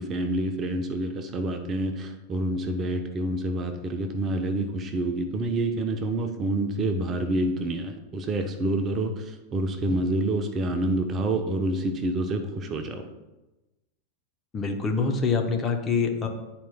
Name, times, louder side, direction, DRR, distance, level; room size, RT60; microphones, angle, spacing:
voice 1, 0.0-13.1, right 1 dB, 25° right, 6 dB, 0.7 m, -28 dB
voice 2, 14.5-16.3, left 5 dB, 25° left, 3 dB, 0.9 m, -25 dB
10.5 x 4.3 x 2.3 m, 1.0 s
figure-of-eight pair, 90°, 0 cm